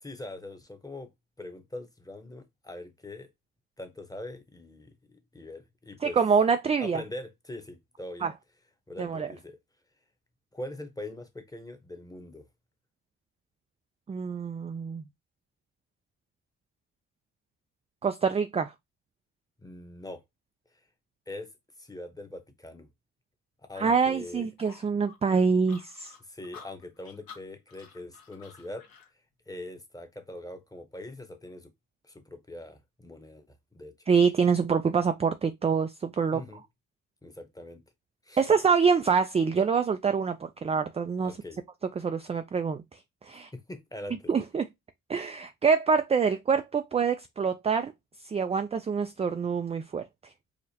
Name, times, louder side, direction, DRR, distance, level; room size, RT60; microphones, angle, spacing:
voice 1, 0.0-1.1 1.4-3.3 3.8-6.2 6.8-8.3 8.9-9.6 10.5-12.4 19.6-20.2 21.3-21.5 21.8-22.9 23.7-24.5 26.2-28.9 29.5-31.7 32.0-33.4 33.7-33.9 36.3-36.6 37.2-37.8 38.2-38.5 41.2-41.6 43.3-44.3, left 1 dB, 10° left, 1.0 m, -42 dB
voice 2, 6.0-7.0 8.2-8.3 9.0-9.3 14.1-15.0 18.0-18.7 23.8-26.1 34.1-36.4 38.4-40.4 40.6-41.3 42.0-42.8 43.3-43.5 44.3-44.6 45.1-47.9 48.3-50.0, right 5 dB, 20° right, 0.3 m, -25 dB
sound 1, 24.6-29.1, left 6 dB, 65° left, 1.2 m, -51 dB
4.9 x 2.1 x 2.8 m
hypercardioid pair, 55°, 39 cm